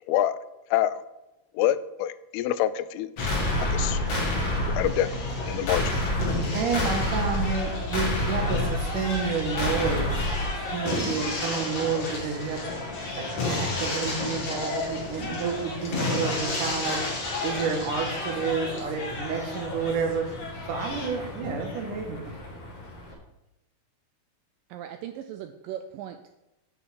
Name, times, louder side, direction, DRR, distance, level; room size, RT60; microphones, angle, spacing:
voice 1, 0.7-1.0 1.5-3.3 3.6-4.0 4.7-5.1 5.5-6.0, left 12 dB, 90° left, 15 dB, 2.4 m, -26 dB
sound 1, 3.2-23.1, left 2 dB, 50° left, 2.8 m, -29 dB
voice 2, 6.5-17.0 17.4-20.3 20.7-22.3, right 5 dB, 65° right, 2 dB, 2.7 m, -30 dB
voice 3, 24.7-26.3, right 10 dB, 85° right, 8 dB, 2.0 m, -38 dB
8.2 x 5.5 x 7.4 m, 0.94 s
omnidirectional pair, 4.3 m